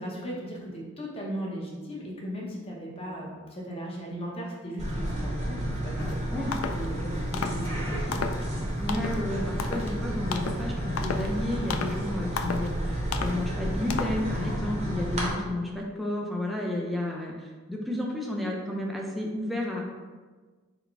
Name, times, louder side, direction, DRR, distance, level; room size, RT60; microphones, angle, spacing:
voice 1, 0.0-8.2, equal, 30° left, -3 dB, 0.9 m, -37 dB
sound 1, 4.8-15.3, equal, 35° right, 0.9 m, -31 dB
sound 2, 6.0-6.2 6.5-6.9 7.3-7.7 8.1-8.5 8.9-9.2 9.6-9.9 10.3-10.7 11.0-11.3 11.7-12.0 12.4-12.7 13.1-13.4 13.9-14.2, left 5 dB, 75° left, 0.3 m, -33 dB
voice 2, 8.8-19.9, left 1 dB, ahead, -2 dB, 0.5 m, -32 dB
4.0 x 2.2 x 4.5 m, 1.4 s
head